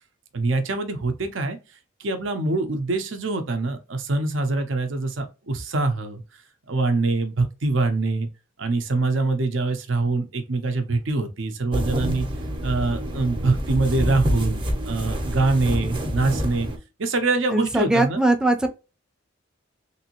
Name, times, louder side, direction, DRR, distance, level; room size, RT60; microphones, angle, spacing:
voice 1, 0.3-1.6 2.0-6.2 6.7-8.3 8.6-12.3 12.6-16.7 17.0-18.2, right 3 dB, 75° right, 0.7 m, -24 dB
sound 1, 11.7-16.8, equal, 25° right, 0.8 m, -27 dB
voice 2, 17.5-18.7, right 2 dB, 5° right, 0.5 m, -20 dB
3.4 x 2.7 x 2.9 m
head